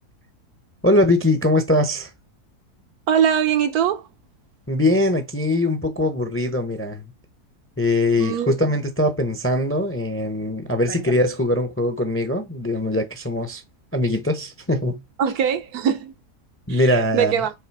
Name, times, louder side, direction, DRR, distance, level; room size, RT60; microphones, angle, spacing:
voice 1, 0.8-2.1 4.7-7.0 7.8-13.6 13.9-15.0 16.7-17.3, left 1 dB, 15° left, 0.6 m, -21 dB
voice 2, 3.1-4.0 8.2-8.6 10.9-11.0 15.2-16.1 16.7-17.5, right 8 dB, 75° right, 1.3 m, -22 dB
6.9 x 3.3 x 4.7 m
omnidirectional pair, 1.7 m